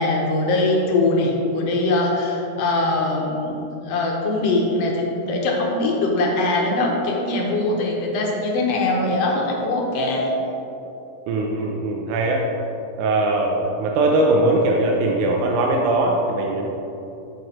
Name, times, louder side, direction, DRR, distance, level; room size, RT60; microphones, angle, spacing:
voice 1, 0.0-10.3, left 2 dB, 65° left, 0 dB, 1.8 m, -22 dB
voice 2, 11.3-12.5 13.0-16.7, right 2 dB, 85° right, 0 dB, 2.1 m, -20 dB
7.5 x 6.8 x 4.2 m, 2.9 s
omnidirectional pair, 3.4 m